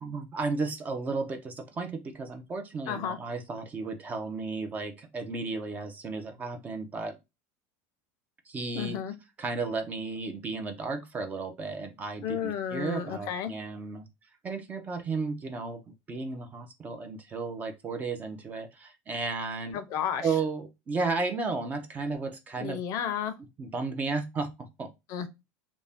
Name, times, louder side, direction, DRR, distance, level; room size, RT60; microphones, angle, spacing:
voice 1, 0.0-7.1 8.5-9.0 9.4-14.1 14.4-15.8 16.1-19.8 20.2-22.8 23.6-24.9, right 4 dB, 20° right, 0.5 m, -33 dB
voice 2, 2.9-3.2 8.7-9.1 12.2-13.5 19.7-20.3 22.6-23.3 25.1-25.3, left 8 dB, 45° left, 0.5 m, -32 dB
2.5 x 2.1 x 3.4 m
supercardioid pair, 145°, 7 cm